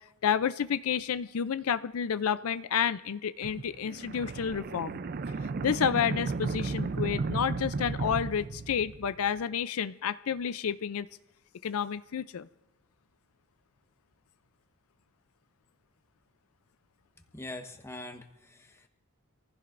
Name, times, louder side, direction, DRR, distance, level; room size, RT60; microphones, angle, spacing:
voice 1, 0.2-4.9 5.6-11.1 11.6-12.5, left 7 dB, 70° left, 13 dB, 0.4 m, -30 dB
sound 1, 3.4-9.3, right 4 dB, 40° right, 0.4 m, -34 dB
voice 2, 17.3-18.9, left 2 dB, 10° left, 4 dB, 1.1 m, -43 dB
26.0 x 15.5 x 2.5 m, 0.96 s
head